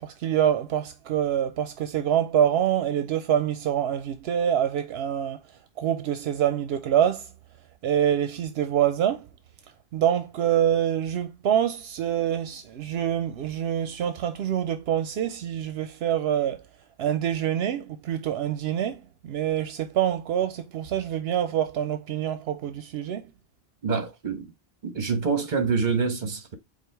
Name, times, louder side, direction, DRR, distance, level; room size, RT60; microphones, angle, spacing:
voice 1, 0.0-5.4 5.8-7.3 7.8-9.3 9.9-16.6 17.0-23.3, right 10 dB, 80° right, 0.8 m, -26 dB
voice 2, 23.8-24.5 24.8-26.5, right 5 dB, 50° right, 1.2 m, -26 dB
5.0 x 2.4 x 4.5 m
omnidirectional pair, 1.0 m